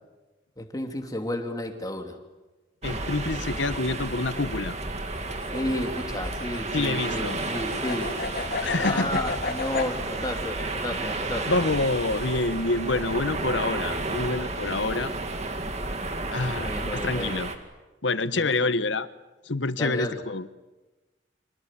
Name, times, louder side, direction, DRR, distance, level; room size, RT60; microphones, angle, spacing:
voice 1, 0.6-2.2 5.5-8.2 8.7-11.5 16.6-17.4 18.3-18.7 19.7-20.2, left 1 dB, 20° left, 4 dB, 2.9 m, -32 dB
voice 2, 2.8-4.7 6.7-7.4 8.6-9.2 11.0-11.1 11.5-15.1 16.3-17.5 18.0-19.1 19.5-20.5, left 2 dB, 80° left, 14 dB, 1.1 m, -27 dB
sound 1, 2.8-17.6, right 2 dB, 35° right, 2.3 m, -32 dB
sound 2, 5.2-9.9, left 4 dB, 55° left, 2.0 m, -33 dB
30.0 x 25.5 x 7.5 m, 1.2 s
head